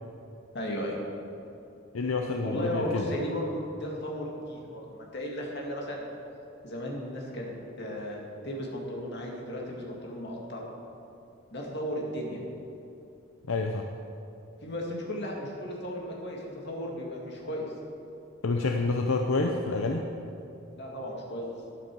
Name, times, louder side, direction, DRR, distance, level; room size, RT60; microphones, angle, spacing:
voice 1, 0.5-1.0 2.4-6.1 6.6-10.6 11.5-12.4 14.6-17.7 20.8-21.5, equal, 55° left, -2 dB, 2.2 m, -35 dB
voice 2, 1.9-3.1 13.5-13.9 18.4-20.0, left 3 dB, 75° left, 3 dB, 0.7 m, -28 dB
12.5 x 10.5 x 4.8 m, 2.8 s
head